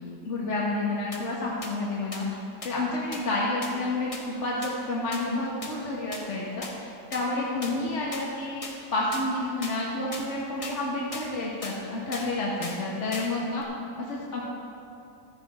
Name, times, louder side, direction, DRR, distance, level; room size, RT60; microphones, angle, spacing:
voice 1, 0.2-2.3 2.6-13.6 14.0-14.4, left 2 dB, 45° left, -4 dB, 1.7 m, -30 dB
sound 1, 1.1-1.2 1.6-1.7 2.1-2.2 2.6-2.7 3.1-3.2 3.6-3.7 4.1-4.2 4.6-4.7 5.1-5.2 5.6-5.7 6.1-6.2 6.6-6.7 7.1-7.2 7.6-7.7 8.1-8.2 8.6-8.7 9.1-9.2 9.6-9.7 10.1-10.2 10.6-10.8 11.1-11.3 11.6-11.8 12.1-12.3 12.6-12.8 13.1-13.3 13.6-13.7, left 2 dB, 20° left, 1.3 m, -37 dB
14.5 x 14.0 x 3.6 m, 2.7 s
omnidirectional pair, 1.8 m